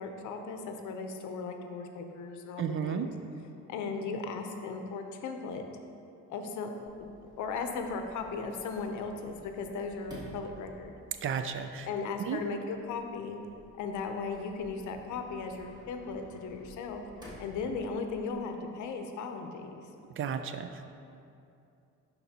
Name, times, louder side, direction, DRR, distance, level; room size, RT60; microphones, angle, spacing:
voice 1, 0.0-3.1 3.7-5.7 6.3-7.1 7.4-10.9 11.8-13.4 13.8-17.0 17.4-19.9, left 4 dB, 75° left, 5 dB, 0.7 m, -37 dB
voice 2, 2.6-3.1 11.2-11.9 12.3-12.4 20.2-20.9, right 7 dB, 45° right, 8 dB, 0.4 m, -33 dB
Sliding door, 6.9-18.4, equal, 15° right, 1.5 m, -53 dB
11.0 x 4.0 x 2.8 m, 2.6 s
cardioid pair, 115°, 30 cm